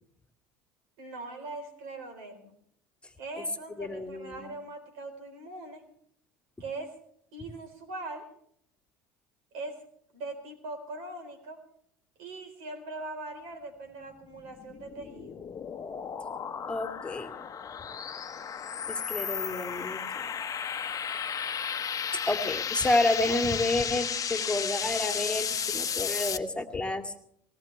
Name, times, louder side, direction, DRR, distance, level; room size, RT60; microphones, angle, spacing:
voice 1, 1.0-2.5 3.2-5.8 6.6-6.9 7.3-8.3 9.5-9.8 10.1-11.6 12.2-15.4, right 2 dB, 70° right, 7 dB, 4.3 m, -41 dB
voice 2, 3.8-4.4 16.7-17.3 18.9-20.3 22.1-27.1, left 2 dB, 10° left, 5 dB, 2.2 m, -30 dB
sound 1, 14.4-26.4, left 7 dB, 35° left, 1.0 m, -34 dB
20.5 x 18.5 x 3.4 m, 0.68 s
hypercardioid pair, 75°, 11 cm